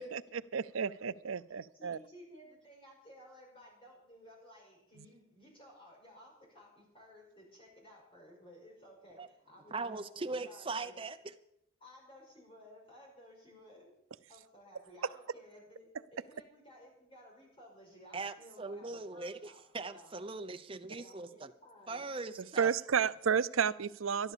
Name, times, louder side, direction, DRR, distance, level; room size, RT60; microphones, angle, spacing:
voice 1, 0.0-2.0 5.0-5.1 22.6-24.3, right 7 dB, 85° right, 16 dB, 0.6 m, -32 dB
voice 2, 1.7-10.9 11.8-13.9 14.3-19.6 19.9-20.1 21.0-22.1, equal, 25° left, -2 dB, 5.9 m, -56 dB
voice 3, 9.7-11.3 18.1-21.5 21.9-22.7, right 3 dB, 25° right, 8 dB, 0.7 m, -40 dB
12.5 x 12.0 x 6.9 m, 0.77 s
head